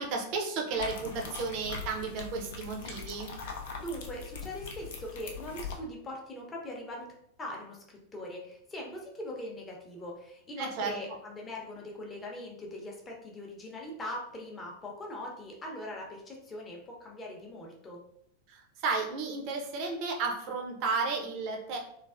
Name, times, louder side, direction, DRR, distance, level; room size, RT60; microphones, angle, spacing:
voice 1, 0.0-3.3 10.6-11.0 18.5-21.8, right 4 dB, 45° right, 2 dB, 0.6 m, -33 dB
sound 1, 0.8-5.8, left 5 dB, 55° left, 0.4 m, -41 dB
voice 2, 3.8-7.1 7.4-18.0, left 1 dB, 20° left, -1 dB, 0.7 m, -41 dB
3.2 x 2.3 x 2.4 m, 0.73 s
figure-of-eight pair, 90°, 0 cm